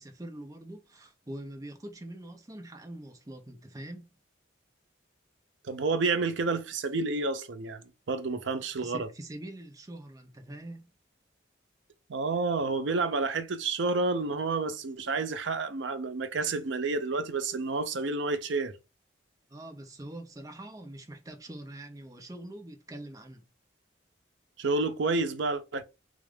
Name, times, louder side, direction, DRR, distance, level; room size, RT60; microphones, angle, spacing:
voice 1, 0.0-4.1 8.6-10.9 19.5-23.4, right 1 dB, 20° right, 0.6 m, -44 dB
voice 2, 5.7-7.8 8.1-9.1 12.1-18.7 24.6-25.8, right 3 dB, 75° right, 0.6 m, -29 dB
3.5 x 2.5 x 3.4 m
head